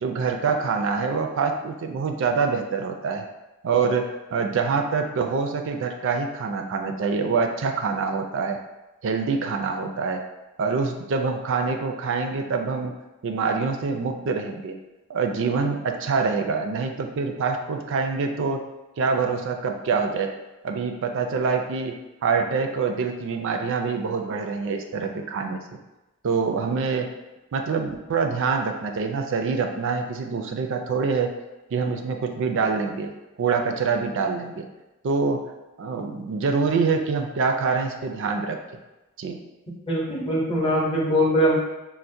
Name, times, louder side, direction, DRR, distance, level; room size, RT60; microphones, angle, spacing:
voice 1, 0.0-3.3 3.6-4.0 4.3-8.6 9.0-10.2 10.6-12.9 13.2-14.8 15.1-18.6 19.0-20.3 20.6-21.9 22.2-25.6 26.2-27.1 27.5-31.3 31.7-33.1 33.4-34.6 35.0-35.4 35.8-38.6 39.2-39.4, right 5 dB, 60° right, 5 dB, 0.4 m, -25 dB
voice 2, 39.9-41.6, equal, 25° left, -4 dB, 0.7 m, -22 dB
4.3 x 2.1 x 2.6 m, 1.0 s
head